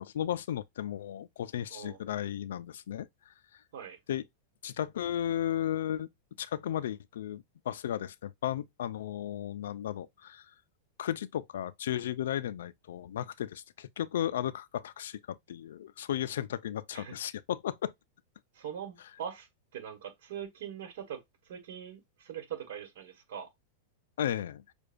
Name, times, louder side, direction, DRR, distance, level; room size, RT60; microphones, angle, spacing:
voice 1, 0.0-3.6 4.1-4.2 4.6-6.1 6.4-10.5 11.0-17.9 24.2-24.6, left 11 dB, 85° left, 0.3 m, -35 dB
voice 2, 18.5-19.5 19.7-21.2 21.5-23.5, right 9 dB, 70° right, 1.3 m, -42 dB
6.6 x 2.3 x 2.5 m
supercardioid pair, 145°, 0 cm